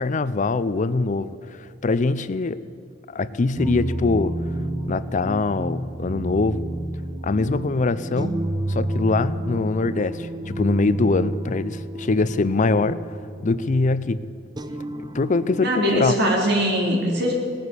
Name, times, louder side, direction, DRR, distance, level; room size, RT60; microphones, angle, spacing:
voice 1, 0.0-2.6 3.1-4.4 4.9-6.6 7.2-8.3 8.7-13.0 13.4-14.2 15.1-16.2, left 3 dB, 40° left, 15 dB, 0.5 m, -23 dB
sound 1, 3.6-16.1, right 1 dB, 20° right, 0.7 m, -30 dB
voice 2, 15.6-17.3, equal, 60° right, -1 dB, 3.6 m, -21 dB
18.5 x 9.2 x 8.3 m, 2.5 s
head